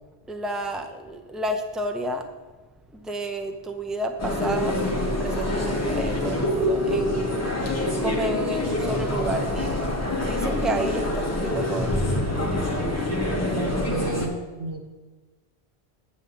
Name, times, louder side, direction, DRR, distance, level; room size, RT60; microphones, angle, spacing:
voice 1, 0.3-2.3 2.9-4.8 5.2-7.3 8.0-9.9 10.2-11.9, right 1 dB, ahead, 4 dB, 0.3 m, -31 dB
sound 1, 4.2-14.3, left 1 dB, 15° left, 1.0 m, -25 dB
voice 2, 13.6-14.9, right 3 dB, 65° right, 3 dB, 1.3 m, -31 dB
9.0 x 3.6 x 6.9 m, 1.3 s
omnidirectional pair, 1.1 m